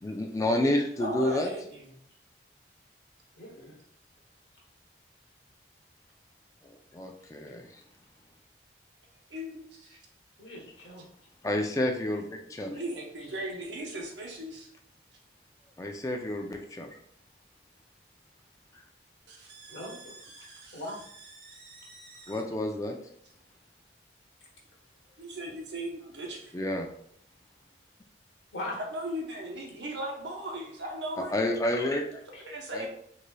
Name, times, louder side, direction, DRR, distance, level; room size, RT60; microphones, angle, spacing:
voice 1, 0.0-1.5 6.9-7.8 11.4-12.8 15.8-16.9 22.3-22.9 26.5-26.9 31.2-32.2 32.7-32.9, left 1 dB, 20° left, 3 dB, 0.3 m, -29 dB
voice 2, 1.0-1.9 9.3-10.0 12.7-14.7 19.3-20.8 21.3-22.4 25.2-26.5 28.8-31.3 32.5-32.9, right 1 dB, 80° right, 0 dB, 0.8 m, -38 dB
voice 3, 3.3-3.8 10.4-11.1 19.7-21.0 22.2-22.3 25.4-25.5 28.5-28.8 32.3-32.4, left 1 dB, 80° left, -2 dB, 1.1 m, -41 dB
3.8 x 3.2 x 2.2 m, 0.67 s
head